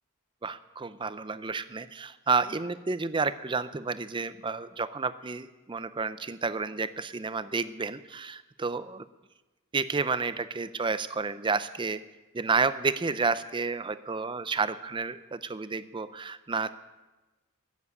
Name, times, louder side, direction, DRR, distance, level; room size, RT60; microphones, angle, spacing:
voice 1, 0.4-9.0 9.7-12.0 12.3-16.7, right 4 dB, 25° right, 14 dB, 0.5 m, -30 dB
14.0 x 7.3 x 8.1 m, 1.1 s
head